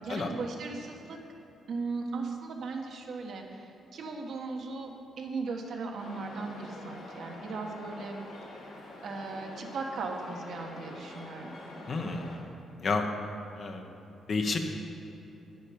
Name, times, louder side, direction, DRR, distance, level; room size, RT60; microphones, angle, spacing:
voice 1, 0.0-1.2 1.7-4.9 5.2-8.1 9.0-11.5, right 4 dB, 70° right, 1 dB, 1.3 m, -37 dB
sound 1, 6.0-12.4, left 2 dB, 85° left, 2.5 m, -46 dB
voice 2, 11.9-12.3 12.8-13.0 13.5-13.8 14.3-14.6, left 4 dB, 55° left, 4 dB, 1.1 m, -30 dB
9.2 x 9.1 x 5.1 m, 2.9 s
cardioid pair, 75°, 0 cm